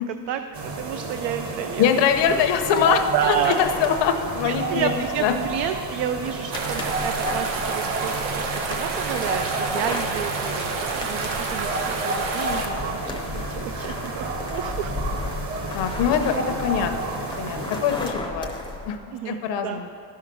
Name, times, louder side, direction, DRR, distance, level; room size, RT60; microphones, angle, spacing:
voice 1, 0.1-0.4 0.8-1.9 3.1-3.6 4.4-14.9 19.1-19.8, right 10 dB, 70° right, 8 dB, 0.5 m, -30 dB
sound 1, 0.5-18.1, right 2 dB, 30° right, 0.8 m, -31 dB
voice 2, 1.8-4.9 5.2-5.3 15.7-18.6 18.8-19.0 19.3-19.9, left 7 dB, 65° left, 7 dB, 0.9 m, -23 dB
sound 2, 2.1-19.0, left 2 dB, 10° left, 0.6 m, -36 dB
sound 3, 6.5-12.7, right 3 dB, 85° right, 1.4 m, -29 dB
11.5 x 5.7 x 6.1 m, 2.6 s
cardioid pair, 160°, 46 cm